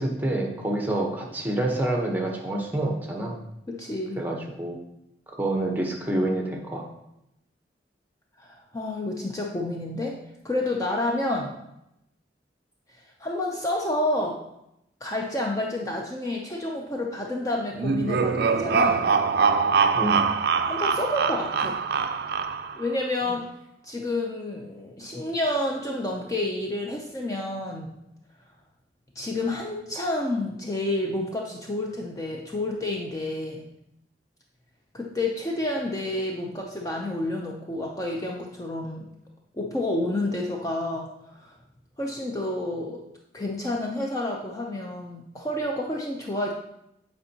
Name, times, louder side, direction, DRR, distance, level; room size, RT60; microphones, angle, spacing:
voice 1, 0.0-3.4 4.2-4.8 5.3-6.9 19.9-20.2, right 1 dB, 10° right, 0 dB, 0.9 m, -27 dB
voice 2, 3.7-4.2 8.4-10.2 10.4-11.5 13.2-14.4 15.0-19.0 20.6-21.8 22.7-23.5 23.8-28.0 29.2-33.7 34.9-39.1 39.5-41.5 42.0-43.0 43.3-46.5, left 1 dB, 20° left, -1 dB, 0.5 m, -29 dB
sound 1, 17.8-22.9, right 5 dB, 60° right, 0.4 m, -23 dB
8.3 x 4.4 x 2.8 m, 0.84 s
head